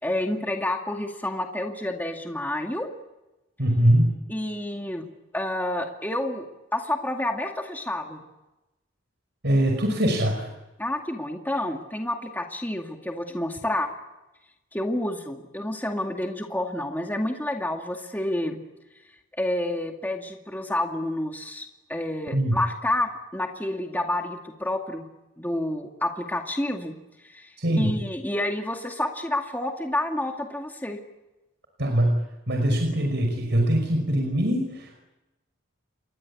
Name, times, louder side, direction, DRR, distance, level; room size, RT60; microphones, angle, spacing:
voice 1, 0.0-2.9 4.3-5.1 5.3-6.5 6.7-8.2 10.8-13.9 14.7-18.6 19.4-25.1 25.4-26.9 27.2-31.0, left 1 dB, 10° left, 2 dB, 2.3 m, -29 dB
voice 2, 3.6-4.1 9.4-10.5 22.3-22.6 27.6-27.9 31.8-35.0, right 1 dB, 60° right, 3 dB, 5.6 m, -22 dB
29.5 x 23.5 x 8.6 m, 0.99 s
head